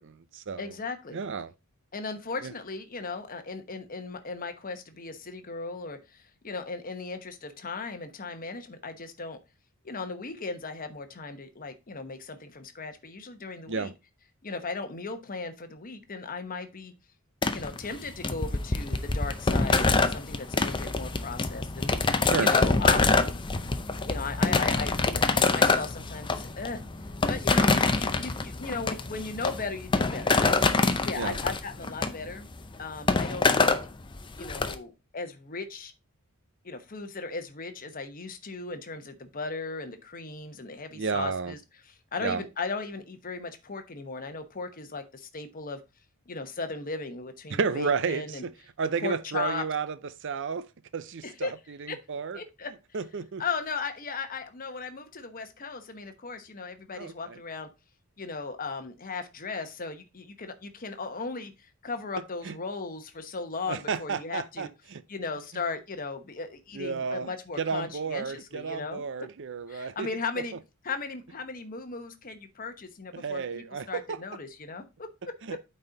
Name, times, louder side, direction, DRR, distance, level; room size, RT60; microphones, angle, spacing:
voice 1, 0.0-0.7 1.1-1.5 2.4-2.5 13.7-13.9 22.2-22.5 31.2-31.4 40.9-41.5 42.2-42.4 47.5-48.5 48.8-50.0 50.2-50.7 50.9-52.4 52.9-53.4 57.0-57.4 62.4-62.5 63.6-65.0 66.7-67.3 67.6-70.1 73.1-74.2 75.4-75.7, right 5 dB, 55° right, 0.6 m, -32 dB
voice 2, 0.6-1.2 1.9-9.4 9.8-13.9 14.4-16.9 17.5-23.2 23.9-26.8 27.3-30.6 31.0-32.5 32.8-33.8 34.4-35.9 36.6-41.6 42.1-45.8 46.3-48.4 49.0-49.6 51.2-51.5 51.9-52.0 52.3-52.7 53.4-57.7 58.2-64.7 65.1-69.0 69.7-70.5 70.8-75.7, left 4 dB, 40° left, 1.0 m, -37 dB
sound 1, 17.4-34.7, left 3 dB, 20° left, 0.6 m, -25 dB
8.7 x 4.4 x 3.9 m
head